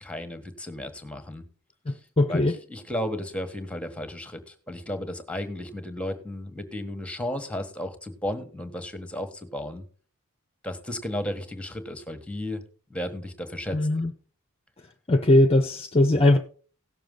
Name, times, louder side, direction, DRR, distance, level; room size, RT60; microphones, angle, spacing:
voice 1, 0.0-1.4 1.9-2.0 2.3-9.8 10.6-12.6 12.9-13.8, left 1 dB, 5° left, 1.4 m, -34 dB
voice 2, 1.9-2.6 13.7-14.1 15.1-16.4, left 1 dB, 25° left, 0.7 m, -20 dB
17.0 x 6.8 x 3.9 m
head